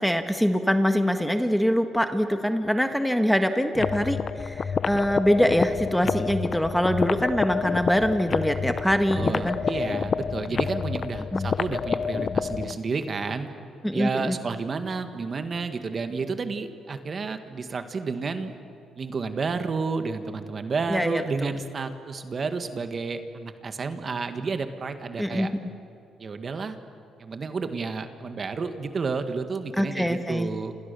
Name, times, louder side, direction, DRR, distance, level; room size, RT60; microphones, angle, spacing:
voice 1, 0.0-9.6 11.3-11.5 13.8-14.4 20.9-21.5 25.2-25.6 29.8-30.5, equal, ahead, 7 dB, 1.6 m, -24 dB
sound 1, 3.7-12.8, left 6 dB, 45° left, 0.7 m, -28 dB
voice 2, 9.1-13.5 13.9-18.5 19.0-25.5 26.2-26.8 27.2-30.7, right 4 dB, 40° right, 8 dB, 1.9 m, -31 dB
28.5 x 28.0 x 7.0 m, 2.8 s
cardioid pair, 90°, 0 cm